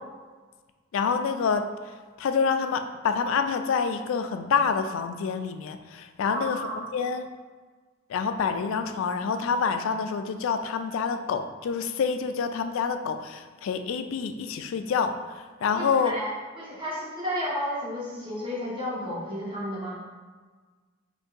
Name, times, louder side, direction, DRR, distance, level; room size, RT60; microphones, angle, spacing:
voice 1, 0.9-1.7 2.2-7.3 8.1-15.1 15.6-16.1, left 5 dB, 75° left, 8 dB, 0.3 m, -27 dB
voice 2, 6.2-6.8 15.7-16.3 16.5-20.0, equal, 25° right, -8 dB, 1.2 m, -32 dB
5.1 x 2.7 x 2.5 m, 1.4 s
head